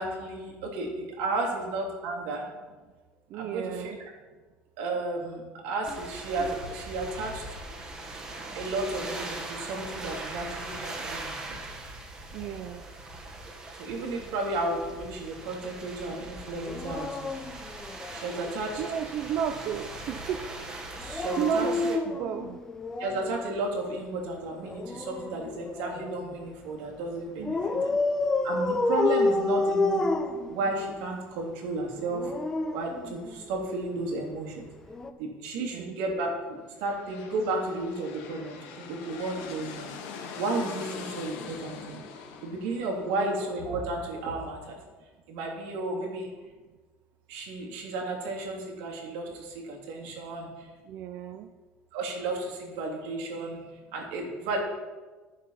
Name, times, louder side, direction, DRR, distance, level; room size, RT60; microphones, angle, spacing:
voice 1, 0.0-2.5 3.3-3.9 4.8-7.4 8.5-11.6 13.8-17.5 18.1-18.8 21.0-21.7 23.0-27.6 27.8-27.9 28.4-30.1 30.5-32.3 32.7-34.7 35.2-39.9 40.4-42.0 42.4-44.8 45.3-46.3 47.3-50.7 51.9-54.6, right 2 dB, 85° right, 0 dB, 3.1 m, -33 dB
voice 2, 3.3-4.0 12.3-12.8 18.8-20.4 21.4-22.6 27.4-27.9 35.5-36.0 43.0-43.3 50.9-51.5, right 8 dB, 50° right, 7 dB, 0.6 m, -33 dB
sound 1, 5.8-22.0, right 2 dB, 15° right, 1.3 m, -41 dB
Dog, 16.7-18.5 21.0-23.4 24.6-26.3 27.4-31.0 32.0-33.6 34.9-35.1, left 3 dB, 15° left, 0.6 m, -29 dB
sound 2, 36.7-44.4, left 5 dB, 90° left, 1.8 m, -43 dB
13.0 x 7.3 x 5.8 m, 1.3 s
cardioid pair, 180°, 4 cm